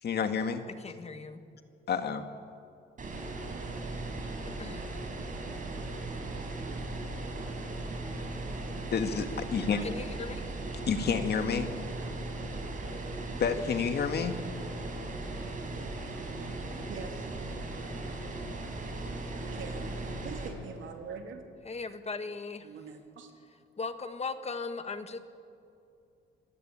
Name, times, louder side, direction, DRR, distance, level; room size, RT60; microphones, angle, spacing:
voice 1, 0.0-0.7 1.9-2.2 8.9-9.8 10.9-11.7 13.4-14.4, left 6 dB, 55° left, 7 dB, 1.9 m, -29 dB
voice 2, 0.8-1.4 4.6-4.8 9.8-10.4 21.6-22.7 23.8-25.2, left 4 dB, 30° left, 9 dB, 1.6 m, -38 dB
sound 1, 3.0-20.5, right 2 dB, 40° right, 4.8 m, -38 dB
voice 3, 16.9-17.3 19.4-21.4 22.6-23.3, right 5 dB, 75° right, 4 dB, 2.7 m, -43 dB
26.0 x 15.0 x 8.8 m, 2.6 s
cardioid pair, 90°, 20 cm